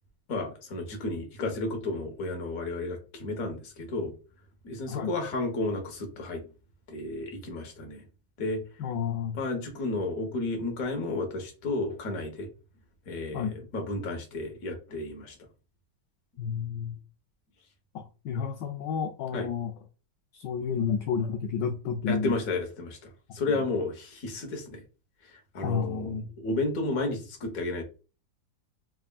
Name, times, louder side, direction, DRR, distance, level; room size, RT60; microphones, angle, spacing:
voice 1, 0.3-4.1 4.6-6.4 6.9-8.0 8.4-8.6 9.3-12.5 13.1-15.3 19.3-19.5 22.1-24.8 25.5-27.8, left 2 dB, 50° left, 1.3 m, -32 dB
voice 2, 8.8-9.4 13.3-13.6 16.4-17.0 17.9-19.7 20.3-22.4 23.5-23.6 25.6-26.3, left 6 dB, 75° left, 1.1 m, -31 dB
4.2 x 3.4 x 2.3 m
omnidirectional pair, 2.2 m